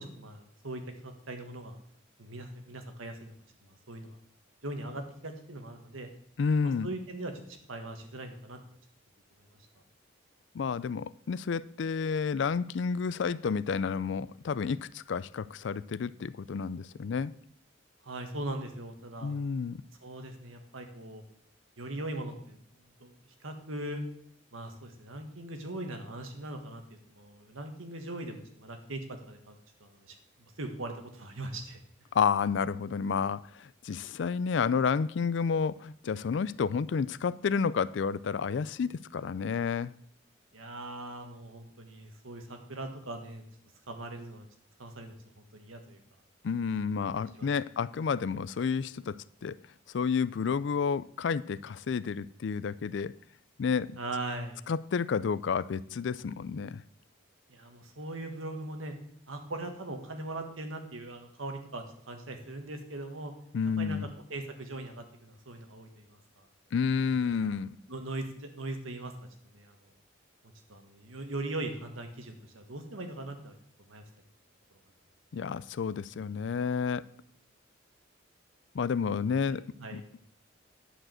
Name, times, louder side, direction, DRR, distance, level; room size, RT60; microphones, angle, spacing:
voice 1, 0.0-1.8 2.2-3.3 3.9-4.2 4.6-6.1 6.6-8.6 18.0-19.3 20.0-21.2 21.8-22.6 23.0-23.1 23.4-24.0 24.5-30.1 30.6-31.8 40.5-43.4 43.9-44.5 44.8-46.0 47.2-47.5 54.0-54.6 57.5-58.9 59.3-63.3 63.8-66.5 67.0-67.1 67.4-67.6 67.9-69.1 69.5-69.8 70.7-73.6 73.9-74.0 79.4-80.0, right 2 dB, 90° right, 1.7 m, -40 dB
voice 2, 6.4-6.9 10.5-17.3 19.2-19.8 32.1-39.9 46.4-49.6 49.9-53.2 53.6-54.0 54.7-56.8 63.5-64.1 66.7-67.8 75.3-77.1 78.7-79.6 79.9-80.2, left 6 dB, 65° left, 0.4 m, -30 dB
11.0 x 5.0 x 7.6 m
head